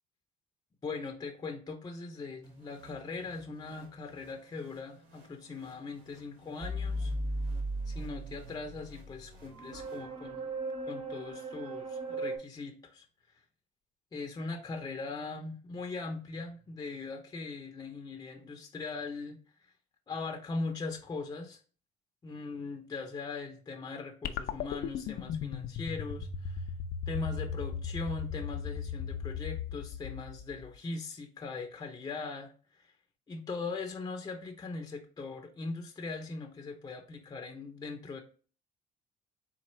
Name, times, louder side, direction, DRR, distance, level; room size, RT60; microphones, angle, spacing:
voice 1, 0.8-7.1 7.9-10.5 10.8-13.1 14.1-19.4 20.1-21.6 22.2-26.7 27.1-32.9 33.3-38.2, left 3 dB, 25° left, 4 dB, 0.6 m, -40 dB
sound 1, 2.4-10.6, right 2 dB, 80° right, 1.5 m, -58 dB
sound 2, 6.6-12.4, right 1 dB, 35° right, 0.9 m, -37 dB
sound 3, 24.2-30.8, left 7 dB, 70° left, 0.5 m, -37 dB
4.1 x 2.4 x 4.3 m, 0.40 s
cardioid pair, 110°, 17 cm